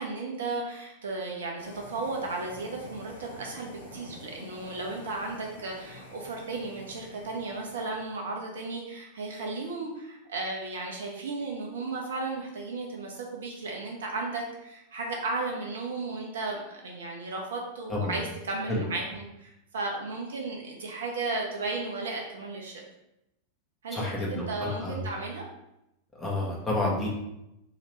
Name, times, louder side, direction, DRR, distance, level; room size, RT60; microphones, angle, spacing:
voice 1, 0.0-22.8 23.8-25.4, right 3 dB, 65° right, 0 dB, 0.5 m, -35 dB
sound 1, 1.6-8.1, left 1 dB, 65° left, 0.7 m, -47 dB
voice 2, 23.9-25.0 26.2-27.1, left 2 dB, 15° left, -4 dB, 1.0 m, -30 dB
2.8 x 2.8 x 3.2 m, 0.87 s
figure-of-eight pair, 90°, 0 cm